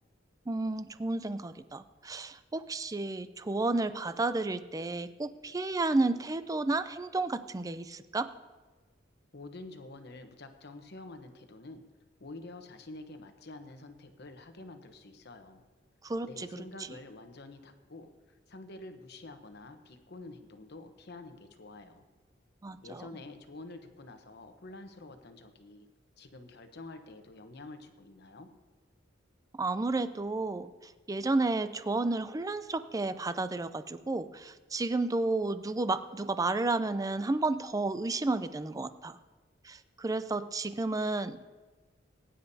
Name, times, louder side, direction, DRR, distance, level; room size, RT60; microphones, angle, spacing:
voice 1, 0.5-8.3 16.0-16.5 22.6-23.1 29.5-39.2 39.6-41.4, right 2 dB, 20° right, 13 dB, 0.4 m, -32 dB
voice 2, 9.3-11.8 12.2-15.6 16.2-22.0 22.8-25.9 26.2-28.5, left 2 dB, 60° left, 7 dB, 1.0 m, -48 dB
21.5 x 10.0 x 2.8 m, 1.3 s
head